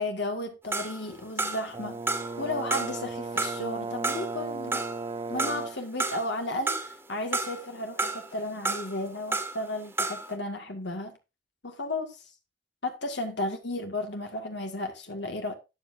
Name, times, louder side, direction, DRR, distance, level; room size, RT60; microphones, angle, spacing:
voice 1, 0.0-2.0 2.4-4.8 5.3-11.2 11.6-12.2 12.8-15.5, left 1 dB, 70° left, 1.9 m, -34 dB
sound 1, 0.7-1.8 2.1-3.0 3.4-6.3 6.7-7.7 8.0-9.6 9.9-10.3, right 2 dB, 10° right, 1.7 m, -31 dB
Brass instrument, 1.7-5.9, right 3 dB, 30° right, 0.4 m, -35 dB
13.0 x 9.9 x 2.6 m
head